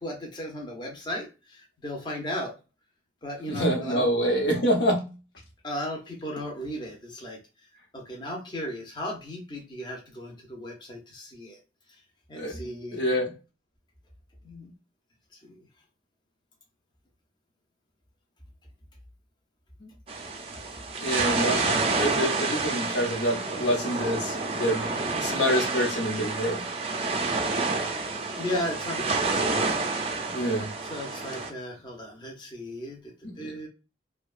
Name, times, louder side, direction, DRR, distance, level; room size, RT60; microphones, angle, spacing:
voice 1, 0.0-2.5 3.2-4.1 5.6-7.4 7.9-11.6 12.3-13.0 14.4-14.7 15.4-15.6 21.3-21.5 28.4-29.4 30.9-33.1 33.4-33.7, left 1 dB, 25° left, -1 dB, 0.5 m, -35 dB
voice 2, 3.5-5.1 12.3-12.6 12.9-13.3 19.8-19.9 21.0-24.9 25.2-26.6 30.3-30.7 33.2-33.5, equal, 85° left, 0 dB, 0.9 m, -26 dB
sound 1, 20.1-31.5, right 3 dB, 35° right, 0.4 m, -29 dB
2.7 x 2.1 x 2.3 m, 0.31 s
head